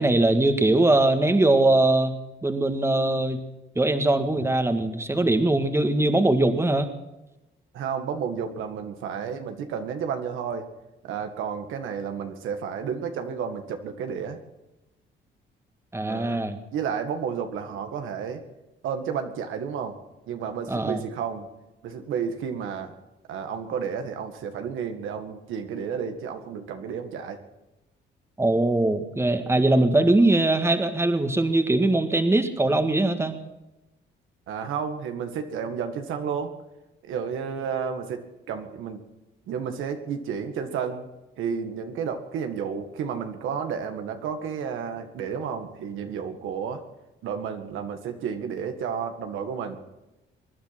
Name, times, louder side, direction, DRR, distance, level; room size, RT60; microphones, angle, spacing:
voice 1, 0.0-2.2 2.4-3.4 3.8-6.9 15.9-16.6 20.7-21.0 28.4-33.4, right 2 dB, 15° right, 8 dB, 1.8 m, -21 dB
voice 2, 7.7-10.7 11.0-14.4 16.0-16.4 16.7-18.4 18.8-20.0 20.3-21.5 21.8-22.9 23.3-27.4 34.5-36.5 37.0-39.0 39.5-41.1 41.4-46.8 47.2-49.8, right 7 dB, 85° right, 6 dB, 1.9 m, -31 dB
23.5 x 10.0 x 6.0 m, 0.97 s
cardioid pair, 90°, 20 cm